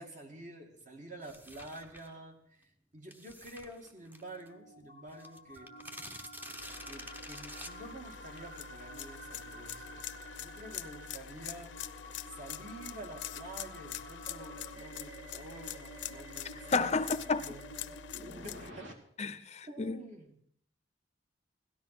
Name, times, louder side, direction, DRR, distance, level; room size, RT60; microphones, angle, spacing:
voice 1, 0.0-5.7 6.8-11.9 12.3-16.9 17.4-18.0 18.4-19.0 19.7-20.4, right 1 dB, 45° right, 2.4 m, -49 dB
sound 1, 1.2-2.2 3.1-4.5 4.8-4.9 5.1-8.6, equal, 10° right, 0.9 m, -48 dB
sound 2, 3.8-18.9, right 1 dB, 85° right, 2.3 m, -50 dB
sound 3, 6.6-18.7, left 10 dB, 85° left, 0.7 m, -45 dB
voice 2, 16.7-17.4 19.2-20.0, left 4 dB, 35° left, 0.6 m, -31 dB
17.0 x 12.5 x 6.0 m
head